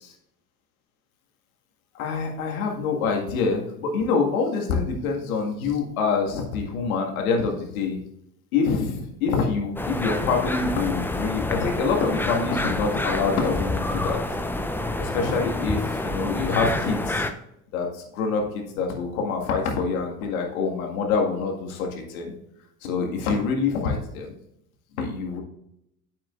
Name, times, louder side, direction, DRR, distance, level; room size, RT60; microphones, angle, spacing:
voice 1, 1.9-8.0 8.5-14.2 15.0-17.3 17.7-22.3 22.8-24.3 25.0-25.4, left 4 dB, 75° left, 2 dB, 1.9 m, -26 dB
sound 1, 9.8-17.3, left 2 dB, 5° left, 0.7 m, -28 dB
9.1 x 7.2 x 2.5 m, 0.79 s
hypercardioid pair, 70°, 42 cm